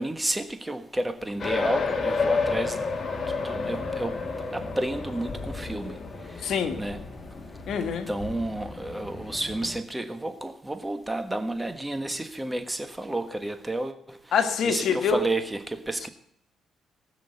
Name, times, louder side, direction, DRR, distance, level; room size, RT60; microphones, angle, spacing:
voice 1, 0.0-2.8 3.4-4.2 4.5-5.9 6.8-7.0 8.1-14.2 14.6-16.1, right 1 dB, 10° right, 1.4 m, -31 dB
sound 1, 1.4-9.8, left 4 dB, 40° left, 2.1 m, -31 dB
voice 2, 6.4-6.8 7.7-8.1 14.3-15.2, left 6 dB, 70° left, 1.8 m, -25 dB
19.5 x 6.5 x 7.9 m
cardioid pair, 90°, 0 cm